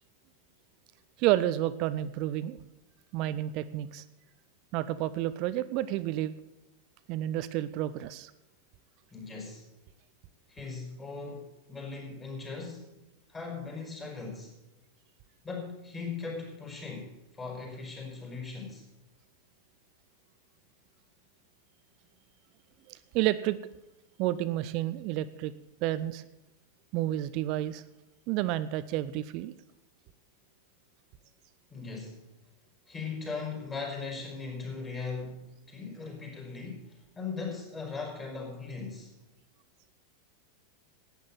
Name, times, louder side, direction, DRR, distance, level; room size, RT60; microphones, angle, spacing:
voice 1, 1.2-2.6 3.1-4.0 4.7-6.3 7.1-8.3 22.9-23.6 24.2-25.5 25.8-26.2 26.9-27.8 28.3-29.5, right 14 dB, 40° right, 14 dB, 0.5 m, -30 dB
voice 2, 9.1-9.7 10.5-12.9 13.3-14.6 15.4-18.8 31.7-32.2 32.9-39.1, left 4 dB, 15° left, 0 dB, 4.6 m, -39 dB
11.5 x 9.1 x 7.1 m, 0.94 s
figure-of-eight pair, 90°, 0 cm